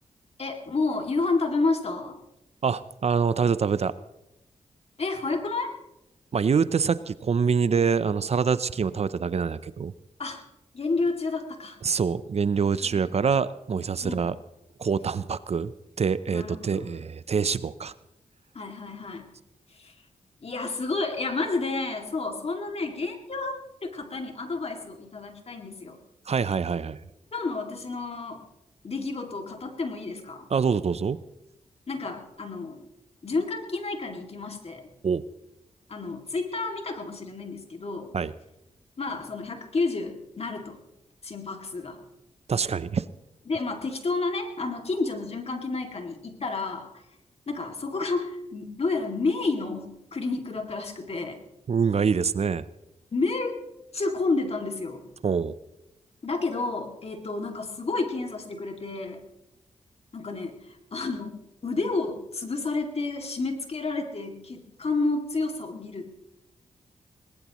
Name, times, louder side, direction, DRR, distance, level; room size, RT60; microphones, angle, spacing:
voice 1, 0.4-2.2 5.0-5.7 10.2-10.4 10.7-11.8 12.8-13.1 14.0-14.2 16.3-17.0 18.5-19.3 19.7-19.9 20.4-23.5 23.8-26.0 27.3-28.4 28.8-30.5 31.9-32.9 33.2-34.9 35.9-38.2 39.0-40.8 41.2-42.0 43.5-46.9 47.5-51.4 53.1-53.6 53.9-55.1 56.2-59.2 60.1-66.1, left 3 dB, 50° left, 4 dB, 2.4 m, -30 dB
voice 2, 2.6-3.9 6.3-9.9 11.8-14.4 14.8-15.7 16.0-17.9 26.3-27.0 30.5-31.2 35.0-35.2 38.1-38.3 42.5-43.0 51.7-52.7 55.2-55.5, right 6 dB, 50° right, 15 dB, 0.6 m, -25 dB
21.0 x 19.0 x 3.1 m, 0.88 s
cardioid pair, 65°, 13 cm